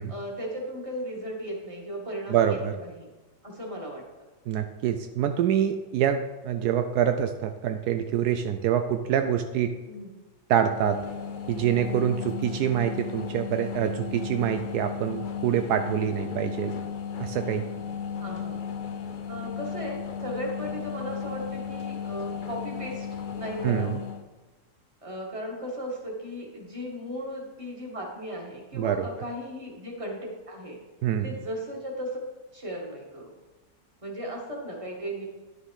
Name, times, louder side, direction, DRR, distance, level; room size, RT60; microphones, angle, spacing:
voice 1, 0.1-3.1 3.4-4.0 9.8-10.1 18.2-18.6 19.3-23.1 23.3-24.0 25.0-30.8 31.2-32.2 32.5-33.3 34.0-35.3, equal, 20° right, -1 dB, 2.0 m, -36 dB
voice 2, 2.3-2.7 4.5-9.7 10.5-11.0 11.5-16.7 17.2-17.7 23.6-24.0 28.7-29.1 31.0-31.3, right 9 dB, 80° right, 8 dB, 1.1 m, -26 dB
sound 1, 10.7-24.2, left 7 dB, 50° left, 0.6 m, -35 dB
11.0 x 6.5 x 4.8 m, 1.2 s
omnidirectional pair, 1.7 m